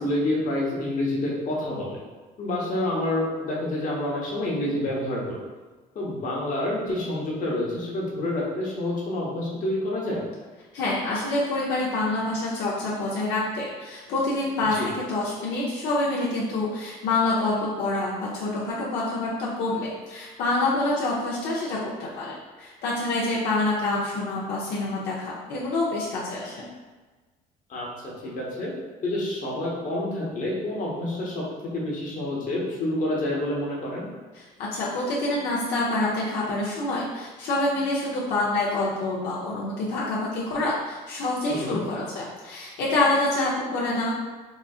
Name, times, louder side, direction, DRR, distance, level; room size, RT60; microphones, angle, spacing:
voice 1, 0.0-2.0 2.4-5.4 5.9-10.2 14.7-14.9 27.7-27.9 28.2-28.7 29.0-31.4 31.7-34.1 41.5-41.8, left 1 dB, 50° left, -4 dB, 1.0 m, -28 dB
voice 2, 10.7-26.7 34.3-44.1, left 2 dB, 80° left, -6 dB, 0.6 m, -27 dB
4.0 x 2.5 x 2.3 m, 1.3 s
cardioid pair, 110°, 17 cm